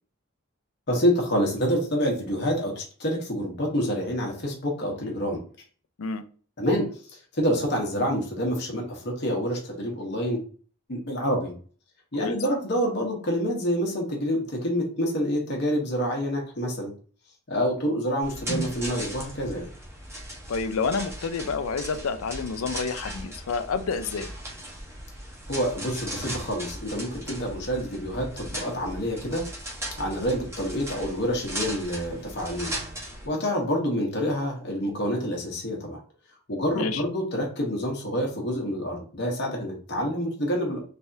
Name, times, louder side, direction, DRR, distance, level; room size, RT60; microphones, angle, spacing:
voice 1, 0.9-5.4 6.6-10.4 10.9-11.5 12.1-16.9 17.5-19.7 25.5-29.4 30.0-32.7 33.2-36.0 36.5-40.8, equal, 50° left, 0 dB, 1.0 m, -27 dB
sound 1, 18.2-33.3, right 1 dB, 10° right, 0.9 m, -37 dB
voice 2, 20.5-24.3 36.7-37.0, left 5 dB, 70° left, 10 dB, 0.4 m, -29 dB
3.4 x 3.3 x 2.6 m, 0.42 s
head